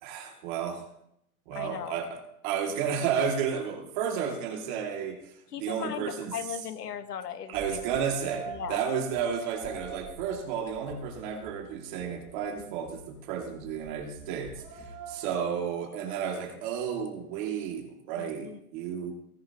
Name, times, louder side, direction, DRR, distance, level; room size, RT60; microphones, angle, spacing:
voice 1, 0.0-0.8 1.5-2.2 2.4-6.3 7.5-19.1, right 7 dB, 30° right, 2 dB, 2.4 m, -32 dB
voice 2, 1.5-2.0 5.5-6.0 6.3-7.8 8.5-8.8 18.2-18.6, left 9 dB, 80° left, 10 dB, 1.5 m, -37 dB
sound 1, 7.5-15.3, right 5 dB, 15° right, 2.7 m, -43 dB
19.5 x 10.5 x 3.0 m, 0.77 s
hypercardioid pair, 160°, 46 cm